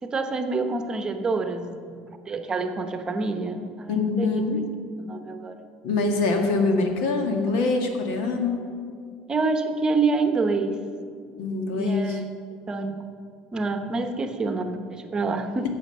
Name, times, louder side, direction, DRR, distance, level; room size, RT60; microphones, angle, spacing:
voice 1, 0.0-4.4 5.0-5.6 9.3-10.8 11.7-12.2 12.7-13.0 13.5-15.7, right 3 dB, 25° right, 7 dB, 0.9 m, -27 dB
voice 2, 3.9-4.6 5.8-8.6 11.4-12.2, left 3 dB, 85° left, 3 dB, 1.8 m, -24 dB
11.5 x 7.7 x 6.6 m, 2.3 s
cardioid pair, 120°, 3 cm